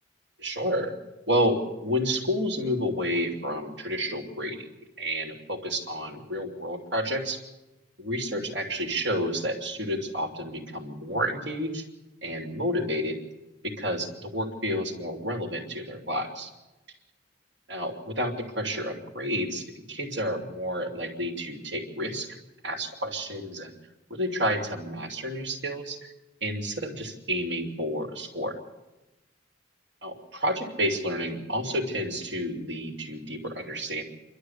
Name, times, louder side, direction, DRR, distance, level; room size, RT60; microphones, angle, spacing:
voice 1, 0.4-0.9 1.3-4.7 5.0-7.4 8.0-11.8 12.2-13.2 13.6-16.5 17.7-22.4 22.6-23.7 24.1-26.0 26.4-28.6 30.0-34.0, equal, 70° right, 2 dB, 3.0 m, -30 dB
28.5 x 12.5 x 8.2 m, 1.0 s
head